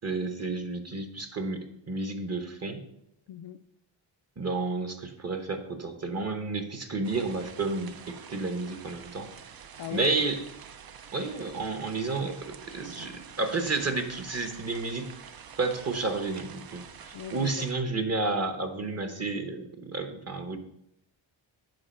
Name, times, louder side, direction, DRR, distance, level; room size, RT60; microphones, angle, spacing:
voice 1, 0.0-1.6 1.9-2.8 4.4-9.3 9.9-10.4 11.1-15.1 15.6-20.6, right 3 dB, 30° right, 1.0 m, -31 dB
voice 2, 3.3-3.6 9.8-10.1 17.1-17.7, left 10 dB, 60° left, 0.5 m, -38 dB
sound 1, 7.0-17.7, right 7 dB, 50° right, 0.6 m, -47 dB
7.8 x 5.1 x 4.3 m
cardioid pair, 80°, 48 cm